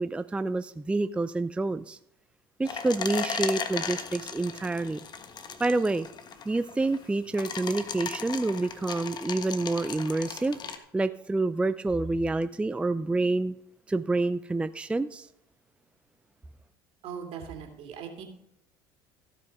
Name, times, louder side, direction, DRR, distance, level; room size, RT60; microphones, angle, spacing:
voice 1, 0.0-2.0 2.6-5.0 5.6-6.1 6.5-13.5 13.9-15.3, right 2 dB, 10° right, 12 dB, 0.4 m, -28 dB
sound 1, 2.7-10.8, left 6 dB, 40° left, 1.4 m, -37 dB
voice 2, 17.0-18.2, right 7 dB, 60° right, 4 dB, 2.8 m, -39 dB
16.5 x 5.6 x 5.4 m, 0.75 s
hypercardioid pair, 75°, 11 cm